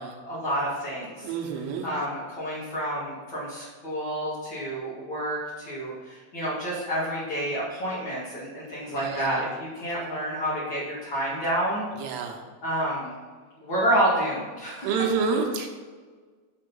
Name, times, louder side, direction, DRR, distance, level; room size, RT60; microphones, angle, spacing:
voice 1, 0.0-1.3 1.8-11.8 12.6-13.1 13.6-14.9, right 1 dB, 70° left, -8 dB, 1.1 m, -29 dB
voice 2, 1.2-1.9 8.8-9.5 12.0-12.4 14.8-15.7, right 5 dB, 80° right, 1 dB, 3.5 m, -28 dB
10.0 x 4.3 x 5.4 m, 1.5 s
omnidirectional pair, 5.8 m